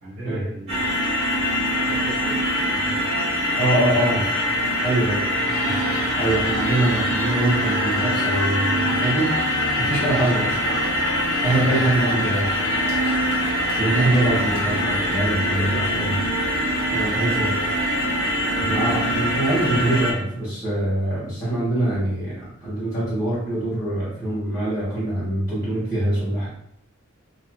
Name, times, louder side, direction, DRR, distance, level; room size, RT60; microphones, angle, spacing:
voice 1, 0.0-2.4 2.7-3.1 3.5-4.3 15.4-16.2 17.0-17.9, right 1 dB, 75° right, -9 dB, 1.0 m, -37 dB
sound 1, 0.7-20.1, equal, 30° right, 0.8 m, -23 dB
voice 2, 3.6-4.2 4.8-5.3 5.6-10.6 11.4-12.6 13.8-15.7 15.9-16.1 16.9-17.5 18.6-26.5, right 1 dB, 15° left, -10 dB, 1.0 m, -24 dB
sound 2, 5.5-15.1, left 1 dB, 75° left, 1.2 m, -33 dB
3.0 x 2.5 x 2.2 m, 0.72 s
head